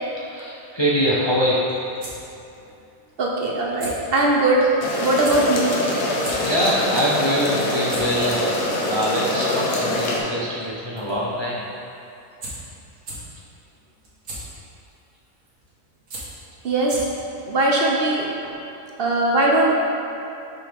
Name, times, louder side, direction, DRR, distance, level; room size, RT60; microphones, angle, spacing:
voice 1, 0.1-1.6 5.9-11.6, equal, 40° left, -7 dB, 0.4 m, -24 dB
sound 1, 1.7-17.3, right 2 dB, 85° right, 1.8 m, -42 dB
voice 2, 3.2-4.7 5.0-5.8 16.6-17.1 17.5-18.3 19.0-19.8, right 2 dB, 55° right, -2 dB, 0.7 m, -20 dB
sound 2, 4.8-10.2, left 1 dB, 85° left, 1.3 m, -24 dB
5.7 x 5.6 x 3.4 m, 2.6 s
omnidirectional pair, 1.4 m